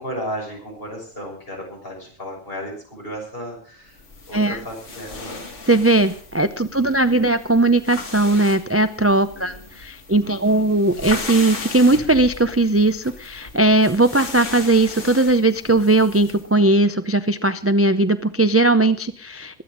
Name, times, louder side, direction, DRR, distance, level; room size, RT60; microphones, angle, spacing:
voice 1, 0.0-4.0 4.3-5.4 6.7-7.3 9.3-9.7 10.2-10.7, equal, 50° left, -1 dB, 6.7 m, -34 dB
sound 1, 4.0-16.5, left 3 dB, 75° left, 2.4 m, -36 dB
voice 2, 5.7-19.6, right 2 dB, 20° right, 11 dB, 0.4 m, -18 dB
22.5 x 8.9 x 5.2 m, 0.43 s
omnidirectional pair, 1.2 m